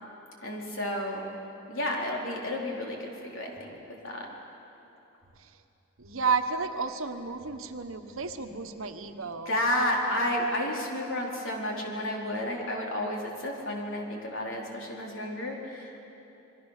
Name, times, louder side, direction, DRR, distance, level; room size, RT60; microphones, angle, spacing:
voice 1, 0.4-1.4 1.7-4.3 9.5-16.0, left 1 dB, 65° left, -1 dB, 4.3 m, -31 dB
voice 2, 6.0-9.5, right 5 dB, 75° right, 7 dB, 1.4 m, -32 dB
27.5 x 22.5 x 6.7 m, 2.9 s
head